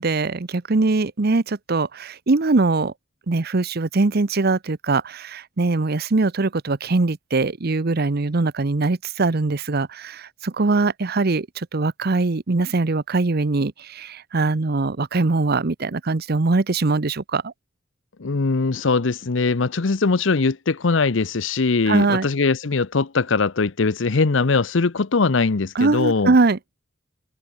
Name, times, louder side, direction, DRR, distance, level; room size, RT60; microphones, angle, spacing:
voice 1, 0.0-2.9 3.3-11.5 11.7-17.5 21.9-22.3 25.8-26.6, right 3 dB, 55° right, 0.8 m, -22 dB
voice 2, 18.2-26.4, left 4 dB, 70° left, 0.8 m, -21 dB
head